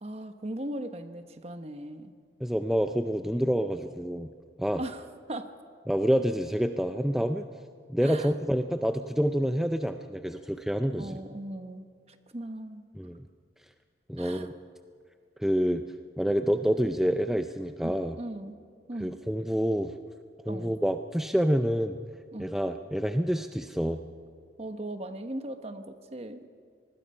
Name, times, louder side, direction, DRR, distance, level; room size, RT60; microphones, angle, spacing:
voice 1, 0.0-2.1 4.8-5.5 8.0-8.3 11.0-12.8 14.2-14.5 17.8-18.5 18.9-19.2 20.5-20.7 22.3-22.5 24.6-26.4, right 1 dB, 35° right, 8 dB, 1.1 m, -38 dB
voice 2, 2.4-4.3 4.6-4.8 5.9-7.5 7.9-11.2 13.0-13.3 14.1-14.5 15.4-15.8 16.2-18.2 19.0-19.9 20.5-22.0 22.4-24.0, equal, ahead, 7 dB, 0.5 m, -27 dB
25.0 x 19.5 x 5.6 m, 2.1 s
head